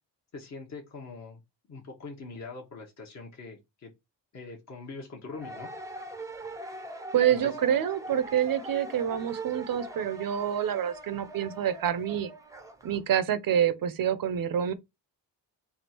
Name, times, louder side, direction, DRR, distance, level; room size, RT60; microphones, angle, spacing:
voice 1, 0.3-1.4 1.7-3.9 4.3-5.7 7.3-7.6, left 3 dB, 40° left, 0.9 m, -43 dB
sound 1, 5.3-13.0, right 1 dB, 10° right, 0.5 m, -42 dB
voice 2, 7.1-12.3 12.8-14.7, right 9 dB, 50° right, 0.6 m, -27 dB
3.5 x 2.3 x 4.2 m
cardioid pair, 105°, 43 cm